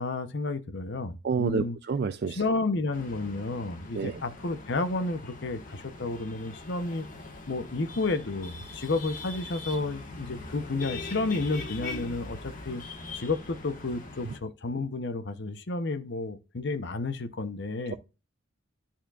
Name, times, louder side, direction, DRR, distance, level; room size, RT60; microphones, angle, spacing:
voice 1, 0.0-1.8 2.4-7.1 7.5-12.8 13.1-17.9, left 3 dB, 55° left, 0.8 m, -31 dB
voice 2, 1.2-2.4 3.9-4.2 14.2-14.3, right 5 dB, 50° right, 0.4 m, -29 dB
sound 1, 2.9-14.4, left 3 dB, 40° left, 1.4 m, -42 dB
11.5 x 4.3 x 2.4 m
head